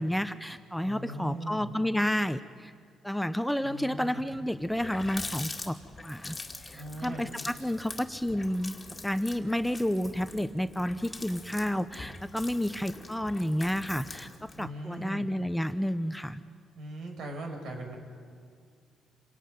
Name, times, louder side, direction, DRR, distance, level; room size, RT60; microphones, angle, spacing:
voice 1, 0.0-2.7 3.0-5.8 6.0-6.4 6.6-8.7 9.0-14.3 14.6-16.4, equal, 5° left, 11 dB, 0.8 m, -30 dB
voice 2, 0.8-1.7 3.6-4.2 6.7-7.3 14.6-15.3 16.8-18.0, right 1 dB, 75° right, 3 dB, 5.2 m, -40 dB
Water tap faucet, 4.6-14.7, left 3 dB, 25° left, 2.3 m, -43 dB
27.5 x 18.0 x 9.4 m, 2.2 s
cardioid pair, 90°, 0 cm